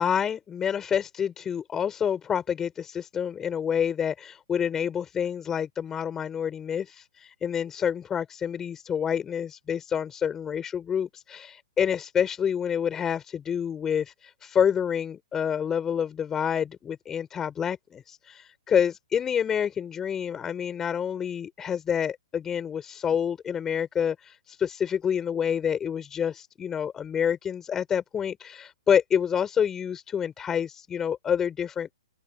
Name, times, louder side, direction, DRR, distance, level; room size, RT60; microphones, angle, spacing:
voice 1, 0.0-32.0, left 8 dB, 15° left, 5.3 m, -28 dB
open air
hypercardioid pair, 125°, 3 cm